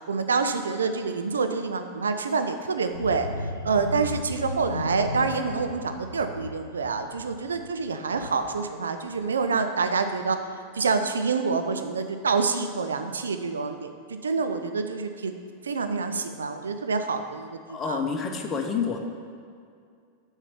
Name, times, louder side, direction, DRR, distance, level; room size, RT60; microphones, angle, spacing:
voice 1, 0.0-3.3 3.6-10.4 10.7-15.3 15.6-18.0, right 4 dB, 70° right, 7 dB, 0.5 m, -27 dB
sound 1, 2.9-8.6 9.0-9.3 9.6-9.7, left 2 dB, 85° left, 0.5 m, -36 dB
voice 2, 17.7-19.0, left 6 dB, 25° left, 3 dB, 0.9 m, -28 dB
6.9 x 4.5 x 6.9 m, 2.3 s
figure-of-eight pair, 90°, 0 cm